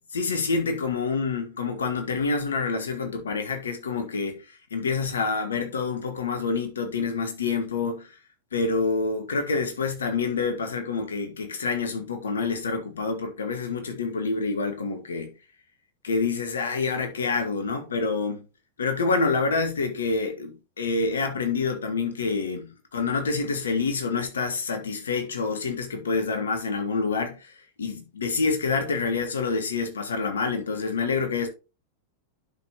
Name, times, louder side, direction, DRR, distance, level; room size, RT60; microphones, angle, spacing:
voice 1, 0.1-4.4 4.7-8.1 8.5-15.3 16.0-18.4 18.8-27.5 27.8-31.5, left 4 dB, 70° left, 1.6 m, -27 dB
11.0 x 5.1 x 2.9 m
figure-of-eight pair, 90°, 0 cm